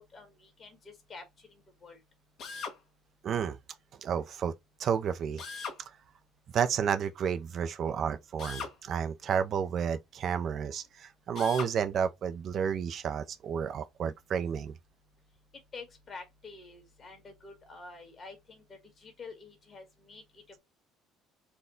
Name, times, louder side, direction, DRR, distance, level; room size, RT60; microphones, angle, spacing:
voice 1, 0.0-2.0 15.7-20.4, left 4 dB, 35° left, 1.6 m, -48 dB
Drill, 2.4-2.8 5.4-5.8 8.4-8.8 11.3-11.7, left 5 dB, 55° left, 1.2 m, -39 dB
voice 2, 3.2-3.6 4.0-4.5 4.8-5.4 6.5-14.7, right 7 dB, 50° right, 0.5 m, -31 dB
4.2 x 2.2 x 3.8 m
cardioid pair, 110°, 0 cm